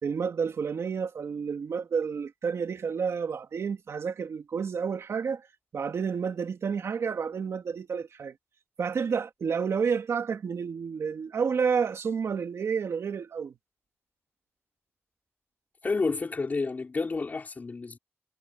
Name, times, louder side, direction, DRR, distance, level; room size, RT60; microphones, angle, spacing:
voice 1, 0.0-5.5 5.7-8.4 8.8-13.6, right 6 dB, 85° right, 2.5 m, -30 dB
voice 2, 15.8-18.0, left 4 dB, 35° left, 5.5 m, -30 dB
wide cardioid pair, 180°, 5 cm